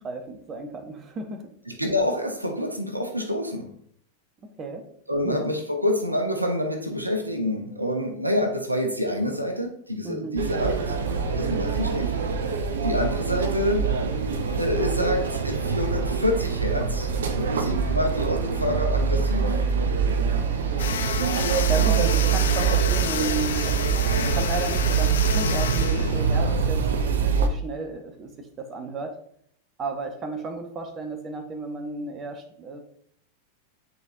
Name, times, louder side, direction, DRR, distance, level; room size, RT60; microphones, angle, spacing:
voice 1, 0.0-1.5 4.6-4.9 5.2-5.4 10.0-10.4 20.5-21.0 21.7-29.2 29.8-32.8, right 3 dB, 25° right, 5 dB, 0.9 m, -33 dB
voice 2, 1.7-3.7 5.1-11.0 11.4-12.1 12.8-13.9 14.5-19.6 21.8-22.1, left 1 dB, 85° right, 4 dB, 0.9 m, -27 dB
sound 1, 10.4-27.5, right 6 dB, 65° right, 0.7 m, -24 dB
sound 2, 20.8-26.8, left 8 dB, 60° left, 0.5 m, -31 dB
9.4 x 4.3 x 2.7 m, 0.67 s
figure-of-eight pair, 90°, 0 cm